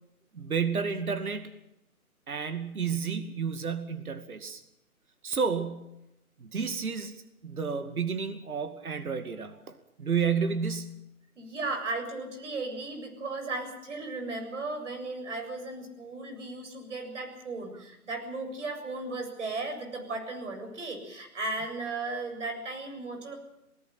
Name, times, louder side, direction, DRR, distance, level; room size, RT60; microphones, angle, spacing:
voice 1, 0.3-1.5 2.3-4.6 5.2-5.9 6.4-11.0, right 6 dB, 70° right, 8 dB, 2.4 m, -31 dB
voice 2, 11.4-23.3, right 3 dB, 55° right, 5 dB, 7.6 m, -36 dB
27.5 x 18.5 x 6.0 m, 0.86 s
hypercardioid pair, 165°, 44 cm